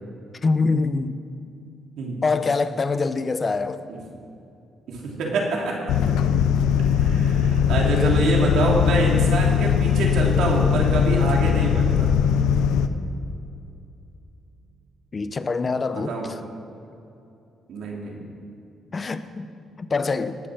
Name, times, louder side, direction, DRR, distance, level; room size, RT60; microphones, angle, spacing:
voice 1, 0.4-1.2 2.2-3.8 8.0-8.1 10.9-11.1 15.1-16.4 18.9-19.5 19.8-20.4, left 4 dB, 35° left, 12 dB, 0.8 m, -24 dB
voice 2, 4.9-5.9 6.9-12.1 15.9-16.3 17.7-18.2, right 2 dB, 75° right, -1 dB, 3.3 m, -26 dB
sound 1, 5.9-12.9, left 8 dB, 90° left, 0.7 m, -20 dB
19.0 x 8.4 x 6.5 m, 2.7 s
cardioid pair, 90°, 0 cm